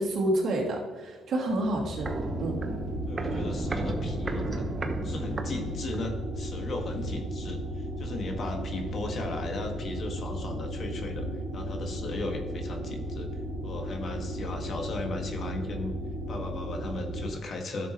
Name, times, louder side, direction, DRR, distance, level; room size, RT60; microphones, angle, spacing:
voice 1, 0.0-2.1 2.4-2.5, right 1 dB, 55° right, -1 dB, 2.5 m, -28 dB
Walk footsteps, 1.5-6.2 6.5-6.6, right 2 dB, 30° right, 1.0 m, -34 dB
sound 1, 1.5-17.3, equal, 75° right, 2.4 m, -35 dB
voice 2, 3.1-4.7 5.0-11.2 11.5-13.3 13.6-15.9 16.3-17.9, left 2 dB, 50° left, 3 dB, 1.6 m, -36 dB
10.5 x 7.1 x 3.0 m, 1.4 s
cardioid pair, 95°, 0 cm